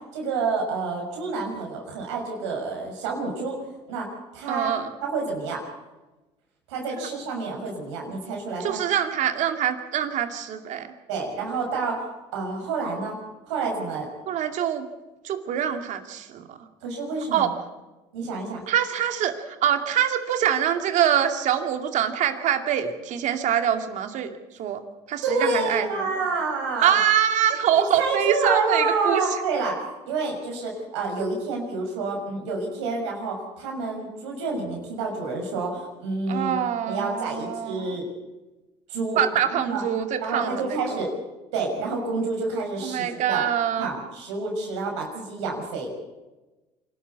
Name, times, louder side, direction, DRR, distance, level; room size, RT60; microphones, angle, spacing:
voice 1, 0.0-3.6 3.9-4.1 4.3-4.7 5.0-5.6 6.7-8.8 11.1-12.0 12.3-13.2 13.5-14.1 16.8-17.5 18.1-18.6 25.2-27.0 27.7-36.6 36.9-38.1 38.9-39.2 39.6-39.8 40.2-41.1 41.5-43.4 43.8-46.0, right 3 dB, 90° right, 0 dB, 6.2 m, -28 dB
voice 2, 4.5-4.9 7.0-7.1 8.6-10.9 14.3-14.9 15.2-16.6 17.3-17.5 18.7-24.3 24.6-24.8 25.1-26.1 26.8-29.2 36.3-38.0 39.2-41.0 42.8-43.9, right 9 dB, 60° right, 7 dB, 2.5 m, -24 dB
26.5 x 12.5 x 8.4 m, 1.1 s
supercardioid pair, 80°, 14 cm